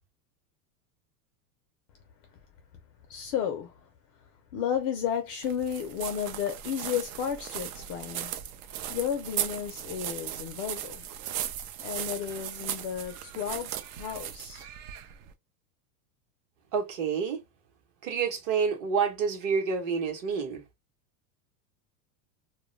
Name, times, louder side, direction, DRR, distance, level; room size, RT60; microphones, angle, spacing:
voice 1, 3.1-3.9 4.2-4.3 4.5-8.3 8.9-11.1 11.8-14.7, left 8 dB, 35° left, 0.4 m, -33 dB
sound 1, 5.4-15.3, right 11 dB, 60° right, 0.6 m, -37 dB
voice 2, 16.7-17.4 18.0-20.6, right 6 dB, 40° right, 0.9 m, -28 dB
2.2 x 2.1 x 3.0 m
supercardioid pair, 130°, 48 cm